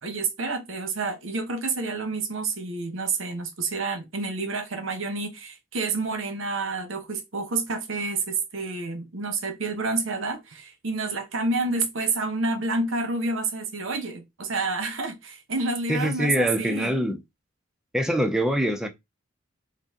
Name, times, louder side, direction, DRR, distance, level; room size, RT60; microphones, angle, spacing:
voice 1, 0.0-17.0, right 3 dB, 75° right, 0.9 m, -29 dB
voice 2, 15.9-17.2 17.9-18.9, equal, 5° right, 0.4 m, -24 dB
3.9 x 2.4 x 3.6 m
head